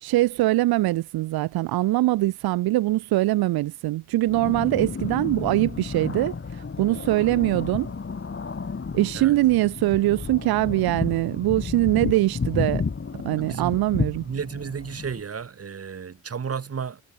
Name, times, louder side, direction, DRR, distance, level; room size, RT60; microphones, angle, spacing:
voice 1, 0.0-7.9 8.9-12.8 13.2-14.3, right 17 dB, 85° right, 0.6 m, -23 dB
sound 1, 4.2-15.2, left 5 dB, 35° left, 6.0 m, -32 dB
voice 2, 13.4-13.8 14.2-17.0, right 6 dB, 40° right, 2.0 m, -33 dB
cardioid pair, 95°, 36 cm